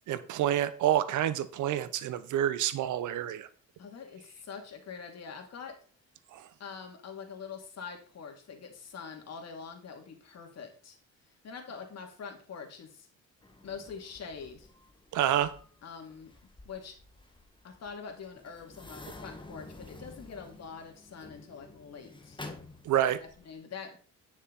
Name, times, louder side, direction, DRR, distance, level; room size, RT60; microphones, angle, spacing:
voice 1, 0.0-3.5 6.3-6.5 15.1-15.5 22.8-23.2, right 11 dB, 80° right, 15 dB, 0.8 m, -28 dB
voice 2, 3.8-5.8 6.6-11.0 11.4-13.1 13.6-14.7 15.8-16.3 16.6-16.9 17.6-22.4 23.1-24.0, left 6 dB, 55° left, 3 dB, 2.6 m, -44 dB
sound 1, 13.4-23.5, left 2 dB, 15° left, 1.6 m, -50 dB
9.7 x 6.2 x 4.1 m, 0.41 s
cardioid pair, 90°, 30 cm